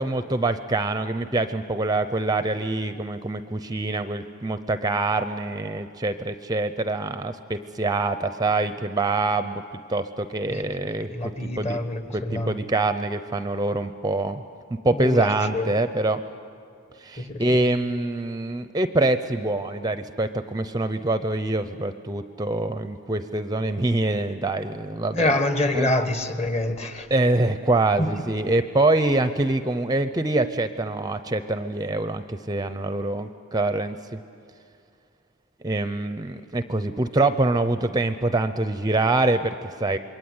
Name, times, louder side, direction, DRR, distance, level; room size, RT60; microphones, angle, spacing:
voice 1, 0.0-9.6 9.9-11.8 12.1-14.4 14.8-16.2 17.0-25.4 25.7-25.9 27.1-34.0 35.6-40.0, right 2 dB, 20° right, 10 dB, 0.6 m, -25 dB
voice 2, 11.1-12.5 15.0-15.8 17.2-17.6 25.1-27.1 28.0-28.2, left 1 dB, 30° left, 8 dB, 1.4 m, -26 dB
27.5 x 22.5 x 9.6 m, 2.4 s
head